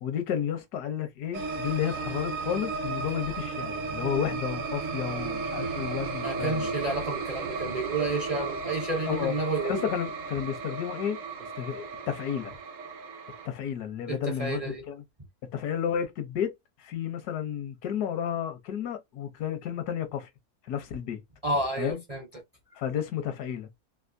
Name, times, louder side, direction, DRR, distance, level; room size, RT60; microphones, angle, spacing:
voice 1, 0.0-6.7 9.1-9.3 9.6-11.2 11.6-12.5 13.4-15.0 15.5-16.5 16.8-20.3 20.7-21.2 21.8-22.0 22.8-23.7, left 9 dB, 80° left, 1.3 m, -32 dB
sound 1, 1.3-13.5, right 4 dB, 65° right, 1.0 m, -34 dB
voice 2, 6.2-9.9 14.1-14.9 21.4-22.3, right 2 dB, 35° right, 0.6 m, -30 dB
3.4 x 2.5 x 2.5 m
omnidirectional pair, 1.6 m